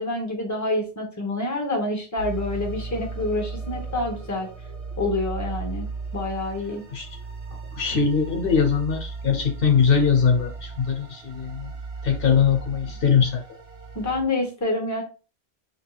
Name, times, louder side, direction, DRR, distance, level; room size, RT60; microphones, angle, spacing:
voice 1, 0.0-4.5 5.0-5.9 6.1-6.8 13.9-15.0, left 2 dB, 20° left, 2 dB, 0.9 m, -27 dB
sound 1, 2.2-14.2, right 4 dB, 35° right, 0.8 m, -36 dB
voice 2, 7.7-11.7 12.0-13.4, left 6 dB, 65° left, 3 dB, 0.8 m, -21 dB
4.4 x 2.8 x 2.3 m, 0.34 s
omnidirectional pair, 1.1 m